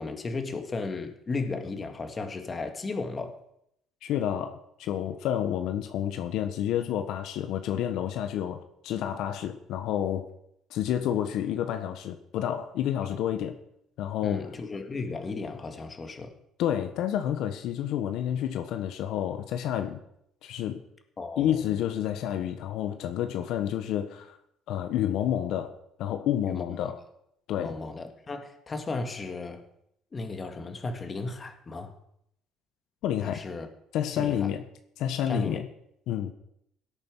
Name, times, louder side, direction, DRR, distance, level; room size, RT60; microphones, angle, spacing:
voice 1, 0.0-3.4 14.2-16.3 21.2-21.6 26.4-26.9 27.5-29.6 30.1-31.9 33.2-33.7 34.2-34.5 35.3-35.6, left 3 dB, 25° left, 7 dB, 1.9 m, -35 dB
voice 2, 4.0-10.3 10.7-13.6 14.0-14.5 16.6-20.0 20.4-20.8 21.4-24.4 24.7-25.7 26.0-27.0 27.5-27.8 33.0-33.4 33.9-34.6 35.0-35.7 36.1-36.3, left 10 dB, 70° left, 8 dB, 1.3 m, -29 dB
17.5 x 8.8 x 6.2 m, 0.74 s
cardioid pair, 120°, 0 cm